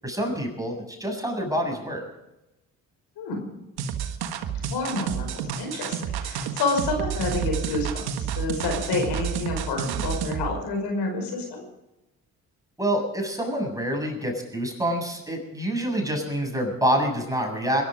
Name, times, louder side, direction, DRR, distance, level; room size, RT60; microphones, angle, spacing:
voice 1, 0.0-2.0 12.8-17.8, right 1 dB, 10° right, 1 dB, 7.3 m, -27 dB
sound 1, 3.8-10.5, right 8 dB, 65° right, 1.6 m, -30 dB
voice 2, 4.5-11.6, left 3 dB, 70° left, 2 dB, 5.5 m, -29 dB
22.0 x 12.0 x 5.1 m, 0.94 s
hypercardioid pair, 50°, 42 cm